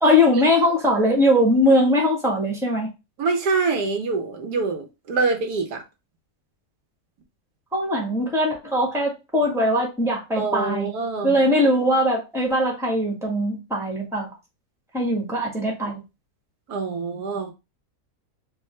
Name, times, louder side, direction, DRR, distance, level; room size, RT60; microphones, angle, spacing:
voice 1, 0.0-2.9 7.7-10.9 11.2-14.3 14.9-16.0, left 1 dB, ahead, 1.4 m, -21 dB
voice 2, 3.2-5.8 10.3-11.3 16.7-17.5, right 4 dB, 85° right, 1.5 m, -25 dB
4.6 x 2.8 x 3.2 m
omnidirectional pair, 1.6 m